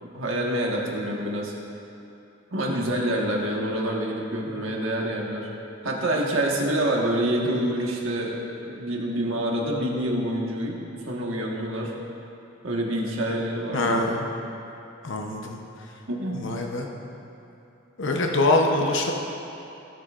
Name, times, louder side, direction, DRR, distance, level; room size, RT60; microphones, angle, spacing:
voice 1, 0.0-1.5 2.5-5.5 5.8-11.9 12.6-14.1 16.1-16.4, right 1 dB, 75° right, -2 dB, 1.5 m, -27 dB
voice 2, 13.7-14.3 15.0-15.6 16.3-16.9 18.0-19.1, left 2 dB, 60° left, 1 dB, 0.8 m, -24 dB
16.5 x 7.7 x 2.5 m, 2.8 s
head